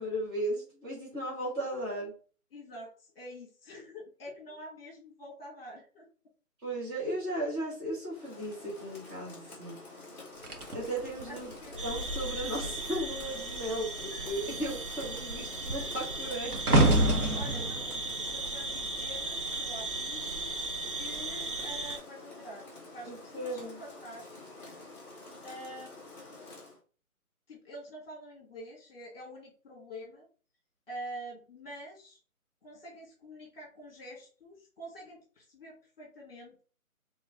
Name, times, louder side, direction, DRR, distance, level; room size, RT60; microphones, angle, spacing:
voice 1, 0.0-2.1 6.6-9.8 10.7-11.5 11.8-16.5 23.1-23.8, right 1 dB, 10° right, -8 dB, 1.6 m, -36 dB
voice 2, 2.5-6.1 11.2-11.8 17.3-20.6 20.9-22.7 22.9-24.9 25.4-26.1 27.5-30.3 30.9-32.2 32.6-36.6, equal, 40° left, 0 dB, 1.7 m, -46 dB
Rain, 8.1-26.8, left 2 dB, 5° left, 1.7 m, -49 dB
sound 1, 10.4-13.2 13.5-13.8 14.2-19.5 20.2-20.5, right 1 dB, 85° right, 1.4 m, -30 dB
sound 2, 11.8-22.0, right 2 dB, 40° right, 0.5 m, -37 dB
3.8 x 3.6 x 3.5 m, 0.38 s
hypercardioid pair, 160°, 43 cm